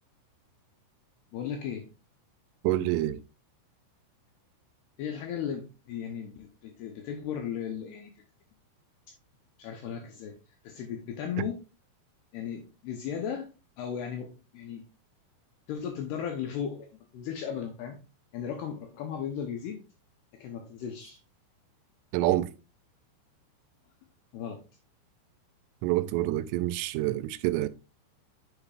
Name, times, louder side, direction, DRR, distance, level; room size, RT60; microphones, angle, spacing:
voice 1, 1.3-1.9 5.0-8.1 9.6-10.4 10.6-11.6 12.3-13.5 13.8-14.9 15.7-18.0 18.3-19.8 20.3-21.2 24.3-24.6, left 8 dB, 80° left, 2.3 m, -36 dB
voice 2, 2.6-3.2 22.1-22.5 25.8-27.7, right 15 dB, 90° right, 3.1 m, -27 dB
7.6 x 6.7 x 2.4 m
omnidirectional pair, 5.7 m